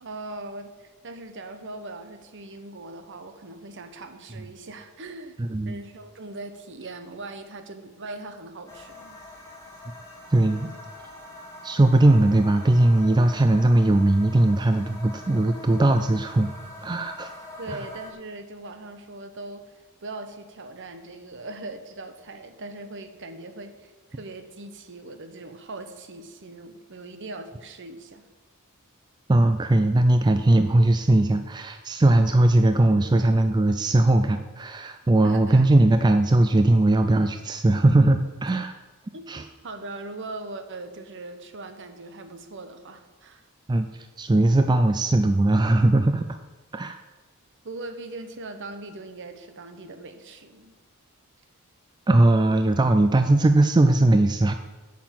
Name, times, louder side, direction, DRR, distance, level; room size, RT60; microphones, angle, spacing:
voice 1, 0.0-5.4 5.6-9.2 17.6-19.6 20.0-28.3 35.2-35.6 39.1-43.5 47.6-50.7, right 2 dB, 55° right, 8 dB, 1.0 m, -40 dB
voice 2, 5.4-5.8 10.3-10.7 11.6-16.5 16.8-17.3 17.7-17.9 29.3-38.7 39.3-39.4 43.7-46.2 46.7-47.0 52.1-54.5, right 2 dB, 20° right, 8 dB, 0.4 m, -19 dB
sound 1, 8.7-18.1, left 1 dB, 15° left, 1.5 m, -44 dB
8.5 x 6.0 x 7.7 m, 1.2 s
head